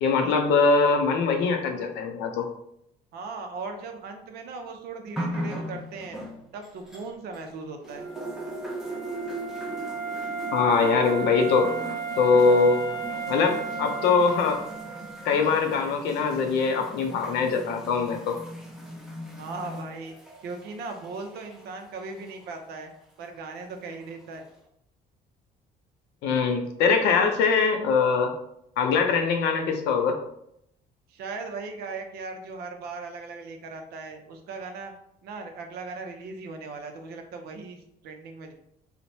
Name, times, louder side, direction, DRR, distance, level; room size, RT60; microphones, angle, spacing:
voice 1, 0.0-2.5 10.5-11.7 12.2-12.9 13.3-14.6 15.2-18.4 26.2-28.3 28.8-30.2, left 5 dB, 85° left, 4 dB, 0.5 m, -22 dB
voice 2, 3.1-6.2 6.5-8.1 19.4-20.1 20.4-22.9 23.2-24.5 31.1-34.9 35.2-38.5, right 3 dB, 70° right, 5 dB, 0.5 m, -38 dB
sound 1, 5.2-7.5 7.8-22.6 23.5-23.6, equal, 5° right, 0.5 m, -39 dB
Wind instrument woodwind instrument, 7.9-15.7, right 6 dB, 50° right, 0.9 m, -35 dB
3.1 x 2.1 x 2.6 m, 0.77 s
cardioid pair, 110°, 17 cm